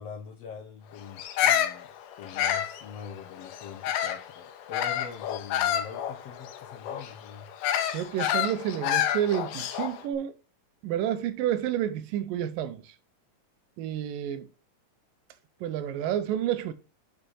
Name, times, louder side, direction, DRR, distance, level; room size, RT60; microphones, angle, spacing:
voice 1, 0.0-1.9 2.2-7.5, left 6 dB, 65° left, 1.7 m, -43 dB
Bird vocalization bird call bird song, 1.2-4.3 4.7-10.0, left 10 dB, 80° left, 2.4 m, -28 dB
voice 2, 7.9-10.3 10.8-12.9 13.8-14.5 15.6-16.7, right 10 dB, 85° right, 2.5 m, -29 dB
6.6 x 5.6 x 5.5 m
omnidirectional pair, 3.9 m